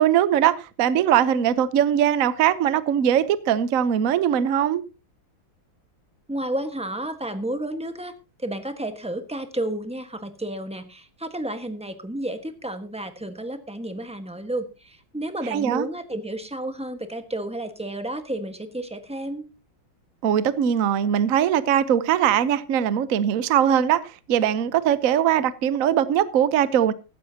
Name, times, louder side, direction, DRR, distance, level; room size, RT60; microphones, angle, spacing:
voice 1, 0.0-4.8 15.5-15.9 20.2-26.9, right 9 dB, 55° right, 1.0 m, -21 dB
voice 2, 6.3-19.5, right 1 dB, 5° right, 0.9 m, -31 dB
16.0 x 13.0 x 2.8 m
omnidirectional pair, 2.2 m